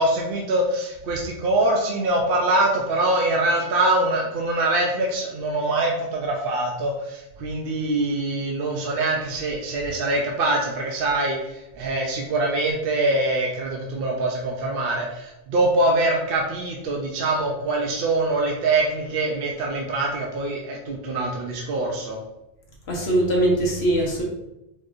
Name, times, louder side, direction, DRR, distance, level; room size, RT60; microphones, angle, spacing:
voice 1, 0.0-22.2, right 2 dB, 70° right, 0 dB, 0.7 m, -24 dB
voice 2, 22.9-24.2, right 1 dB, 90° left, -1 dB, 1.2 m, -21 dB
4.2 x 3.0 x 2.5 m, 0.91 s
omnidirectional pair, 1.0 m